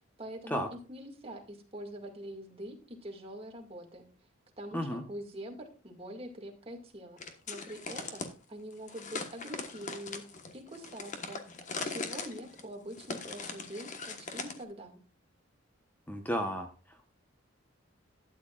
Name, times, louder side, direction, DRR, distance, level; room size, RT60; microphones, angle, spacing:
voice 1, 0.2-4.1 4.6-7.2 7.5-10.3 10.5-11.4 11.8-15.0, equal, 30° right, 2 dB, 2.0 m, -44 dB
voice 2, 4.7-5.0 16.1-16.7, equal, 10° left, 4 dB, 1.0 m, -32 dB
sound 1, 7.2-8.3 8.9-14.6, left 4 dB, 40° left, 1.3 m, -40 dB
12.0 x 9.6 x 2.4 m, 0.35 s
head